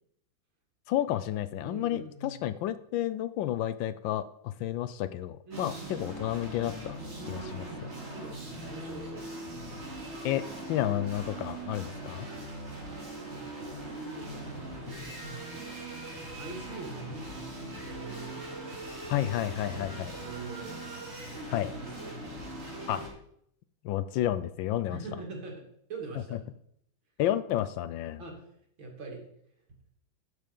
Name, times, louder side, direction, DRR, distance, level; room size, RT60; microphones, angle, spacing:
voice 1, 0.9-7.0 7.3-7.6 10.2-12.3 19.1-20.1 21.5-21.7 22.9-23.0 23.8-25.0 27.2-28.2, left 12 dB, 80° left, 15 dB, 1.3 m, -31 dB
voice 2, 1.6-2.4 5.5-6.1 6.9-9.2 13.2-15.5 16.4-18.5 19.7-20.8 21.5-22.1 24.9-25.6 25.9-26.4 28.2-28.5 28.8-29.2, right 3 dB, 75° right, 0 dB, 3.3 m, -44 dB
sound 1, 5.5-23.1, right 1 dB, 35° right, 3.1 m, -41 dB
11.5 x 6.6 x 5.3 m, 0.72 s
omnidirectional pair, 2.1 m